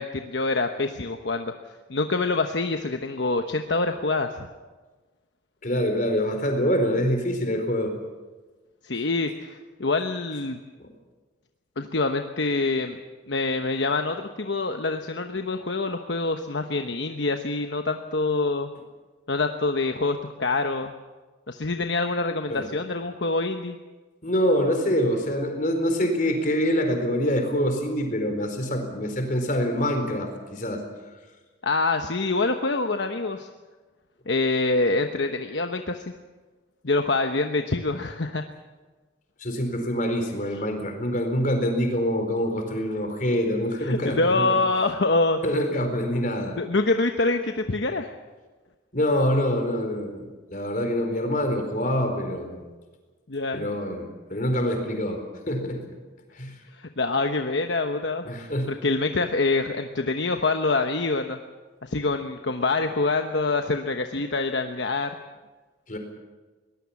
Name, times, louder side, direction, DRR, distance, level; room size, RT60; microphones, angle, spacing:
voice 1, 0.0-1.5 1.9-4.3 8.8-10.6 11.8-13.0 13.3-18.7 19.3-20.9 21.5-23.8 31.6-33.5 34.3-36.0 36.8-38.4 43.8-45.4 46.6-48.1 53.3-53.7 56.8-58.2 58.7-61.4 61.8-65.1, left 3 dB, 65° left, 6 dB, 1.1 m, -25 dB
voice 2, 5.6-7.9 22.5-22.7 24.2-30.8 39.4-44.6 45.4-46.6 48.9-50.2 50.5-52.7 53.5-55.9 56.4-56.5 58.2-58.7 65.9-66.0, equal, 45° left, 4 dB, 4.3 m, -25 dB
22.0 x 19.5 x 7.2 m, 1.3 s
head